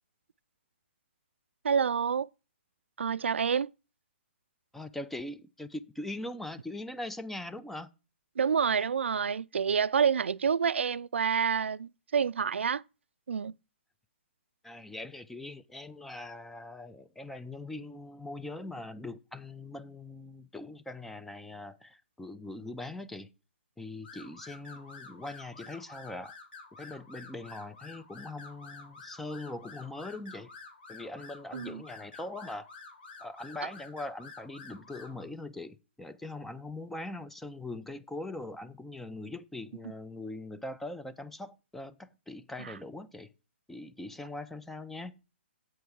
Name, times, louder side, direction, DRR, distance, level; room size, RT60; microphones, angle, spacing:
voice 1, 1.6-2.3 3.0-3.7 8.4-12.8 13.3-13.5 31.5-31.8 42.6-42.7, right 7 dB, 85° right, 0.3 m, -28 dB
voice 2, 4.7-7.9 14.6-23.3 23.8-26.3 26.7-30.5 30.9-32.7 33.2-43.3 43.7-45.2, left 2 dB, 5° left, 0.4 m, -41 dB
sound 1, 24.0-35.2, left 4 dB, 60° left, 3.8 m, -50 dB
7.8 x 4.6 x 7.1 m
hypercardioid pair, 145°, 6 cm